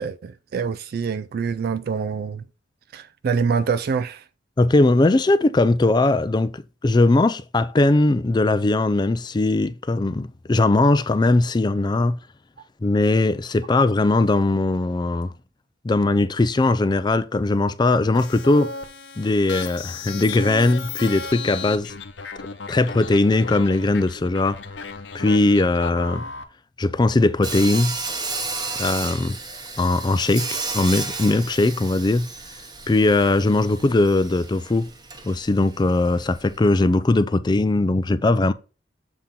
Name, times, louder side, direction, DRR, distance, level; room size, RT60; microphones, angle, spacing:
voice 1, 0.0-2.4 2.9-4.2, right 5 dB, 55° right, 0.3 m, -25 dB
voice 2, 4.6-12.2 12.8-15.3 15.8-18.7 19.2-21.9 22.7-24.6 25.1-26.2 26.8-28.0 28.8-29.4 29.8-32.3 32.9-34.9 35.2-38.5, left 2 dB, 25° left, 0.4 m, -20 dB
sound 1, 18.1-26.4, left 4 dB, 70° left, 0.8 m, -35 dB
Sawing, 27.4-36.6, right 3 dB, 25° right, 0.9 m, -33 dB
7.2 x 3.7 x 4.2 m
head